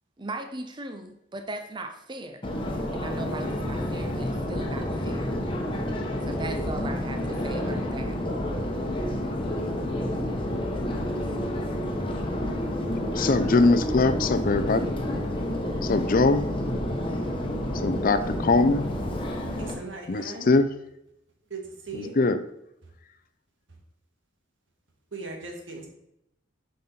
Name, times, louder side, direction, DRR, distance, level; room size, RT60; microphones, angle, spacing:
voice 1, 0.2-2.4 2.9-5.4 6.3-8.2, right 2 dB, 25° right, 6 dB, 0.6 m, -38 dB
Subway metro underground, 2.4-19.7, left 1 dB, 25° left, 1.1 m, -29 dB
voice 2, 13.2-14.9 15.8-16.5 17.8-18.9 20.1-20.7 22.2-22.4, left 3 dB, 45° left, 12 dB, 0.5 m, -22 dB
voice 3, 19.6-20.5 21.5-21.6 21.9-22.1 25.1-25.9, right 3 dB, 80° right, 2 dB, 1.7 m, -38 dB
7.3 x 5.3 x 4.3 m, 0.82 s
head